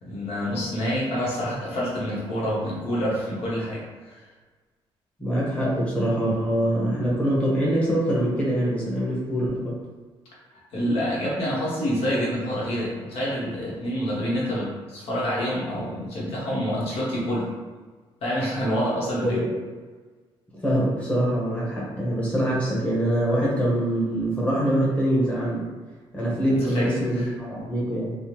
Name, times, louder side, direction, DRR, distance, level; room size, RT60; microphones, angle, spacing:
voice 1, 0.0-4.2 10.7-17.5 18.2-19.5 26.6-27.3, equal, 80° left, -6 dB, 1.0 m, -27 dB
voice 2, 5.2-9.8 19.2-19.5 20.6-25.7 26.1-28.2, right 1 dB, 15° left, -6 dB, 0.9 m, -24 dB
3.3 x 2.0 x 2.9 m, 1.4 s
cardioid pair, 140°, 10 cm